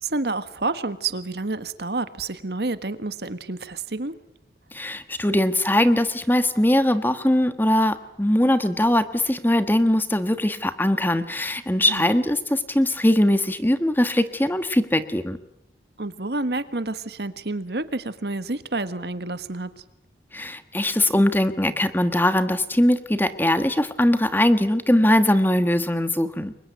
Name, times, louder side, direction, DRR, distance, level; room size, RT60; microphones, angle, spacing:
voice 1, 0.0-4.2 11.9-12.0 16.0-19.8, right 2 dB, 70° right, 12 dB, 1.6 m, -29 dB
voice 2, 4.7-15.4 20.3-26.6, left 1 dB, 10° left, 10 dB, 1.4 m, -21 dB
29.5 x 24.0 x 8.1 m, 0.79 s
head